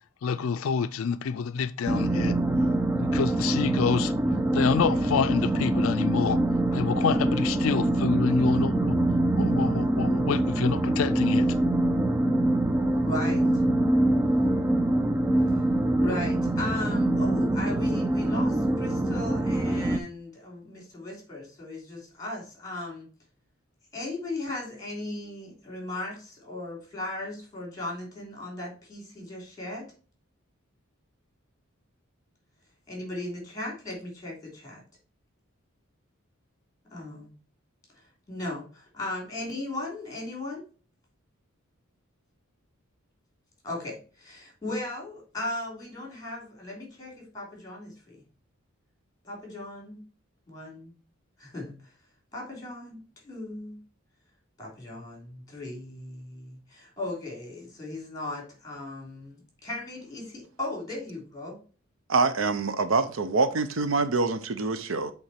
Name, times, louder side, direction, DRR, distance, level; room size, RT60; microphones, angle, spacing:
voice 1, 0.2-2.3 3.0-4.1 4.5-6.4 6.7-9.0 9.4-11.5, left 6 dB, 75° left, 0.4 m, -27 dB
sound 1, 1.9-20.0, right 1 dB, 10° right, 0.4 m, -24 dB
voice 2, 13.0-13.5 15.5-15.6 16.0-23.1 23.9-29.9 32.9-34.8 36.9-37.3 38.3-40.6 43.6-48.2 49.2-50.0 50.5-50.9 51.4-51.8 52.3-53.8 54.6-61.6, left 2 dB, 15° left, 3.2 m, -37 dB
voice 3, 62.1-65.1, right 3 dB, 70° right, 0.7 m, -25 dB
7.9 x 3.6 x 4.3 m
head